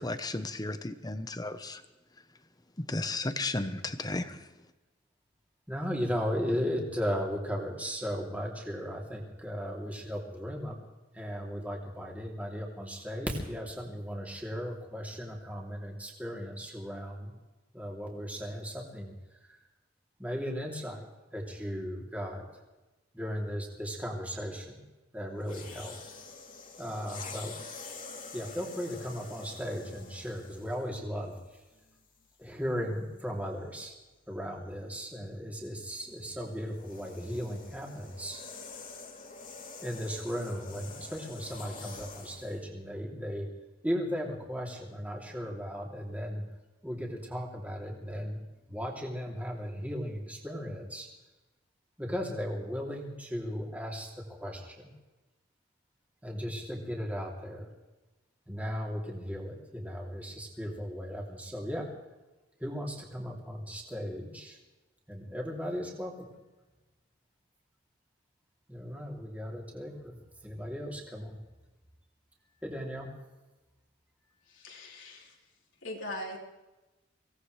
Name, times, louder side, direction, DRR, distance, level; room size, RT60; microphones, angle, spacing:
voice 1, 0.0-1.8 2.8-4.4, left 2 dB, 20° left, 10 dB, 0.9 m, -34 dB
voice 2, 5.7-10.8 11.1-17.3 17.7-19.1 19.4-19.6 20.2-21.1 21.3-22.4 23.1-24.8 25.1-25.9 26.8-27.5 28.3-31.4 32.4-33.9 34.3-38.4 39.8-43.5 43.8-46.4 46.8-48.4 48.7-51.1 52.0-54.9 56.2-57.7 58.5-61.9 62.6-64.6 65.1-66.3 68.7-70.2 70.4-71.4 72.6-73.1, equal, 10° right, -1 dB, 3.0 m, -36 dB
sound 1, 25.4-30.9 31.8-32.0 35.9-42.6, left 4 dB, 45° left, 3.0 m, -46 dB
voice 3, 74.5-75.4 75.8-76.4, left 1 dB, 80° left, -1 dB, 3.8 m, -40 dB
24.5 x 17.5 x 3.3 m, 1.1 s
head